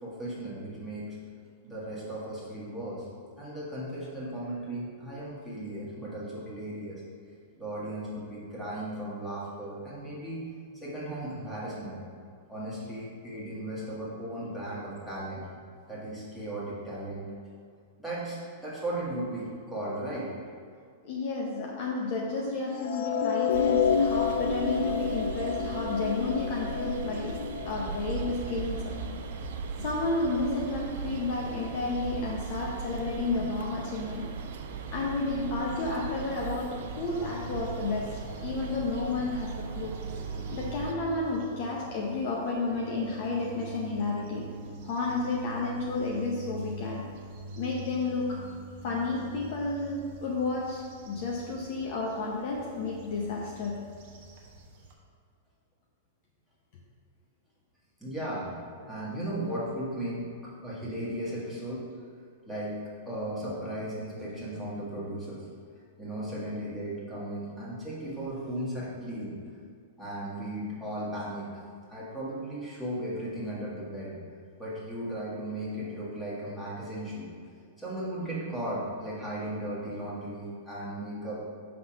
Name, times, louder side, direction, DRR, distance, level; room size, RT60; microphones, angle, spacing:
voice 1, 0.0-1.1 1.6-3.1 3.4-7.0 7.6-10.4 10.8-12.0 12.5-15.4 15.9-17.3 18.0-20.3 58.0-58.5 58.9-61.8 62.5-65.4 66.0-69.3 70.0-71.5 71.9-74.1 74.6-77.3 77.8-81.4, right 1 dB, 5° left, -8 dB, 1.5 m, -36 dB
voice 2, 21.0-29.0 29.8-34.3 34.9-40.0 40.5-44.5 44.8-47.0 47.6-48.4 48.8-53.9, left 3 dB, 45° left, -2 dB, 0.7 m, -31 dB
sound 1, 22.8-29.1, left 6 dB, 85° left, 0.3 m, -29 dB
sound 2, 23.5-40.9, right 5 dB, 65° right, 0.5 m, -38 dB
sound 3, 35.6-54.9, right 1 dB, 45° right, 1.1 m, -45 dB
5.8 x 3.4 x 5.7 m, 2.2 s
supercardioid pair, 160°, 0 cm